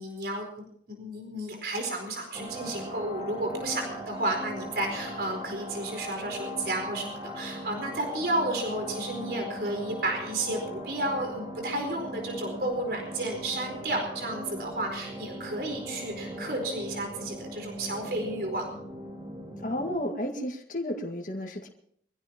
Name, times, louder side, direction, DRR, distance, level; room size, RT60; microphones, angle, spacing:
voice 1, 0.0-18.7, right 1 dB, 65° right, 2 dB, 4.5 m, -32 dB
sound 1, 2.3-19.9, equal, 30° right, 4.5 m, -39 dB
voice 2, 19.6-21.7, left 1 dB, 45° left, 1 dB, 2.0 m, -32 dB
24.0 x 16.0 x 3.0 m, 0.65 s
head